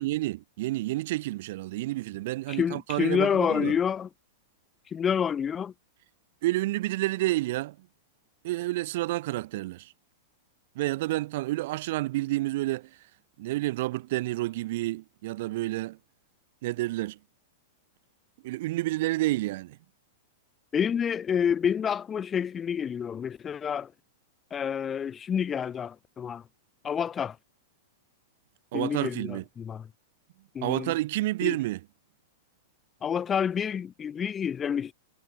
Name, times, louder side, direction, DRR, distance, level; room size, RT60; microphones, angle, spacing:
voice 1, 0.0-3.8 6.4-7.9 8.4-9.9 10.8-12.9 13.4-16.0 16.6-17.2 18.4-19.8 28.7-29.4 30.6-31.8, right 18 dB, 50° right, 0.5 m, -29 dB
voice 2, 2.5-4.1 4.9-5.7 20.7-23.9 24.5-26.4 26.8-27.4 28.7-29.9 30.5-30.9 31.4-31.6 33.0-34.9, left 7 dB, 20° left, 0.6 m, -28 dB
figure-of-eight pair, 100°, 0 cm